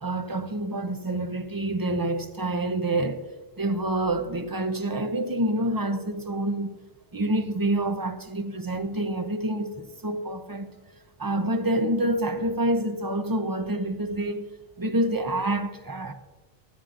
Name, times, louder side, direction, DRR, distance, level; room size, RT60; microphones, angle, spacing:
voice 1, 0.0-3.2 3.6-6.8 7.1-10.7 11.2-14.5 14.8-16.1, right 1 dB, 25° right, 0.5 m, -27 dB
24.5 x 9.5 x 2.5 m
omnidirectional pair, 1.1 m